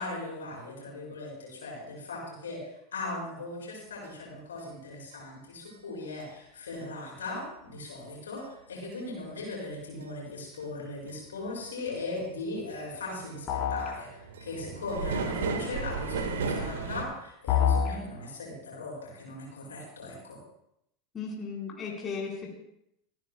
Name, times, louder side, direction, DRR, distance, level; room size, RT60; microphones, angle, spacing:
voice 1, 0.0-20.4, left 2 dB, 75° left, -2 dB, 6.0 m, -38 dB
sound 1, 4.0-4.1 4.6-4.7 5.1-5.2 5.7-5.8 6.2-6.3 6.7-6.8 7.3-7.4 7.8-7.9 8.4-8.5 8.9-9.0 9.5-9.6 10.0-10.1 10.5-10.6 11.1-11.2 11.6-11.9 12.2-12.3 12.6-17.0, right 4 dB, 70° right, 1.5 m, -34 dB
sound 2, 13.5-13.9 17.5-17.9, left 8 dB, 45° left, 3.9 m, -25 dB
voice 2, 21.1-22.5, left 5 dB, 25° left, -3 dB, 4.0 m, -36 dB
29.5 x 10.5 x 2.2 m, 0.80 s
figure-of-eight pair, 85°, 0 cm